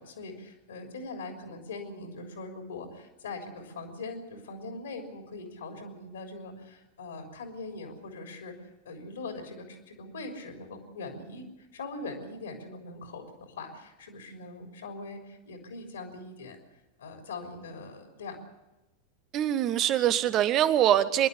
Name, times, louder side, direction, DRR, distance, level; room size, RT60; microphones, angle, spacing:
voice 1, 0.0-16.6 17.0-18.4, left 3 dB, 65° left, 3 dB, 3.5 m, -41 dB
voice 2, 19.3-21.3, right 11 dB, 35° right, 14 dB, 1.1 m, -23 dB
25.0 x 11.5 x 9.7 m, 1.0 s
figure-of-eight pair, 90°, 0 cm